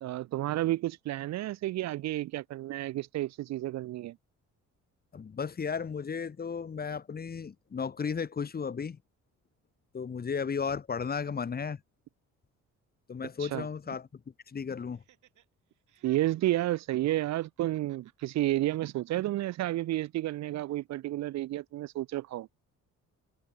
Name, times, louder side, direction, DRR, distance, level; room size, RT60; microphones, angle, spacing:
voice 1, 0.0-4.2 13.4-13.7 16.0-22.5, right 15 dB, 60° right, 0.5 m, -31 dB
voice 2, 5.1-9.0 9.9-11.8 13.1-14.1 14.5-15.0, left 6 dB, 30° left, 1.0 m, -34 dB
Laughter, 14.9-15.4 15.7-18.4 18.7-20.3 20.7-20.8, right 13 dB, 80° right, 7.9 m, -62 dB
cardioid pair, 90°, 30 cm